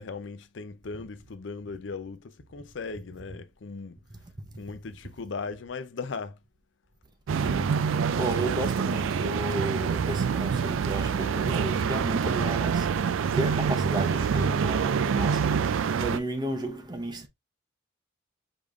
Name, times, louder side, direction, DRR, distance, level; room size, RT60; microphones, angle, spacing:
voice 1, 0.0-4.0 4.6-6.4, left 4 dB, 70° left, 0.5 m, -38 dB
voice 2, 4.1-4.5 7.3-17.3, right 1 dB, 20° right, 0.8 m, -34 dB
sound 1, 7.3-16.2, right 6 dB, 90° right, 0.4 m, -26 dB
sound 2, 15.0-15.7, right 2 dB, 60° right, 1.0 m, -43 dB
5.0 x 3.5 x 2.4 m
head